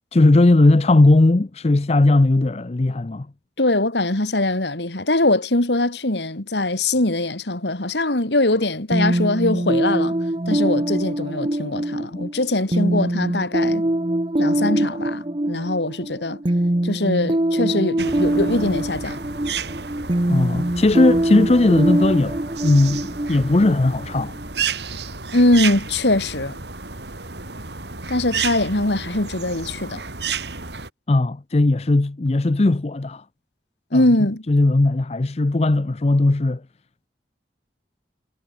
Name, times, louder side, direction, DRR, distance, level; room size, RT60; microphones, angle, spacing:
voice 1, 0.1-3.3 12.1-12.3 20.3-22.4 22.6-24.3 31.1-33.2 33.9-34.0 34.5-36.6, left 2 dB, 35° left, 0.6 m, -17 dB
voice 2, 3.6-10.2 10.5-13.9 14.4-16.4 16.8-19.2 25.3-26.6 28.1-30.0 33.9-34.4, left 2 dB, 80° left, 2.9 m, -22 dB
sound 1, 8.9-24.5, right 1 dB, 30° right, 1.0 m, -23 dB
sound 2, 18.0-30.9, right 5 dB, 75° right, 4.3 m, -32 dB
head